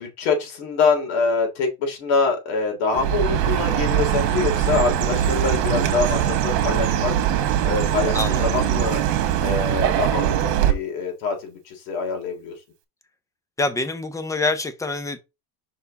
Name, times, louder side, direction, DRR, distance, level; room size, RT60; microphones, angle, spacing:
voice 1, 0.0-7.1 7.6-9.0 9.4-12.6, left 4 dB, 70° left, 3.6 m, -25 dB
Chirp tweet, 2.9-10.7, right 10 dB, 70° right, 1.6 m, -22 dB
voice 2, 8.1-8.5 13.6-15.2, left 2 dB, 5° left, 0.6 m, -25 dB
5.5 x 4.6 x 4.1 m
supercardioid pair, 140°, 48 cm